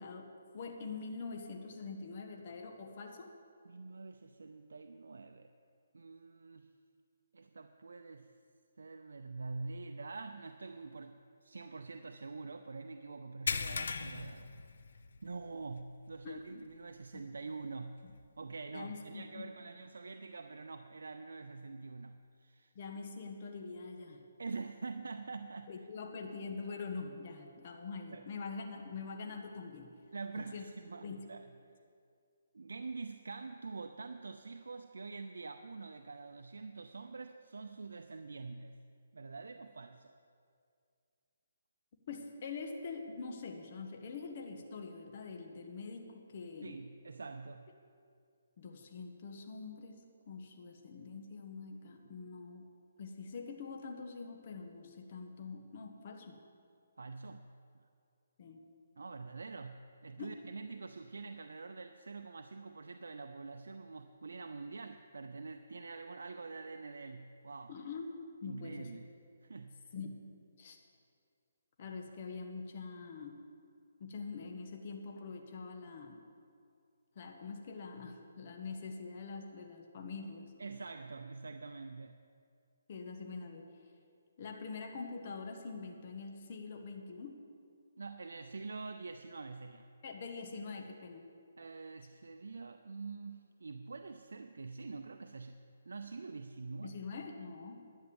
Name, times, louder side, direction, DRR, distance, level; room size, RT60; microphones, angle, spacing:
voice 1, 0.0-3.3 16.2-16.4 17.1-17.2 18.0-18.1 18.7-19.5 22.7-24.3 25.7-30.0 30.5-30.6 31.0-31.3 42.1-46.8 48.6-52.7 53.0-56.4 58.4-58.6 60.2-60.4 67.7-68.1 68.4-69.0 69.9-70.3 70.6-70.8 71.8-73.4 74.0-76.2 77.1-80.5 82.9-83.7 84.4-87.4 90.0-91.3 96.8-97.8, left 4 dB, 40° left, 3 dB, 1.3 m, -44 dB
voice 2, 3.6-5.5 5.9-6.7 7.3-8.3 8.8-14.6 15.2-18.0 18.4-22.7 24.4-25.7 28.1-28.2 30.1-31.5 32.5-38.8 39.1-40.1 46.6-47.7 52.0-52.1 57.0-57.5 59.0-67.8 68.4-69.1 69.4-69.9 80.6-82.3 88.0-89.9 91.6-97.0, right 4 dB, 85° right, 7 dB, 0.6 m, -46 dB
sound 1, 13.5-15.3 15.7-15.9 16.4-16.5 18.1-18.2, left 5 dB, 65° left, 0.6 m, -38 dB
11.5 x 9.1 x 7.1 m, 2.3 s
hypercardioid pair, 165°, 0 cm